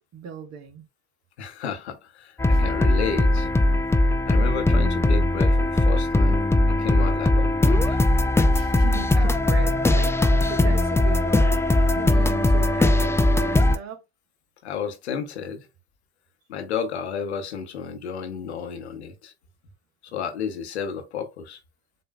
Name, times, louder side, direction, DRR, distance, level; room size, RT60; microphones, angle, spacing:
voice 1, 0.1-0.9 2.5-2.7 8.5-10.2 10.4-14.0, right 6 dB, 55° right, 1.3 m, -37 dB
voice 2, 1.4-3.5 4.3-6.4 6.8-8.0 14.6-15.7 16.5-19.3 20.1-21.6, left 6 dB, 90° left, 0.9 m, -32 dB
sound 1, 2.4-13.8, left 1 dB, 10° left, 0.5 m, -19 dB
7.5 x 2.7 x 2.3 m
hypercardioid pair, 60°, 32 cm